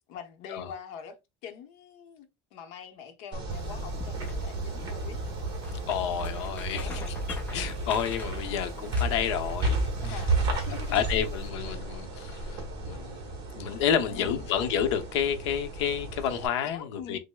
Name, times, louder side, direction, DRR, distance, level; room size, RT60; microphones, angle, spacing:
voice 1, 0.1-1.2 1.4-5.2 6.7-7.2 10.0-11.0 14.0-14.5 16.6-17.2, left 7 dB, 50° left, 0.8 m, -43 dB
sound 1, 3.3-16.5, right 2 dB, 30° right, 1.2 m, -33 dB
sound 2, 3.5-11.5, left 2 dB, 10° left, 0.5 m, -48 dB
voice 2, 5.9-9.8 10.0-10.2 10.9-17.2, left 8 dB, 85° left, 0.7 m, -30 dB
6.2 x 2.1 x 2.2 m
cardioid pair, 170°, 14 cm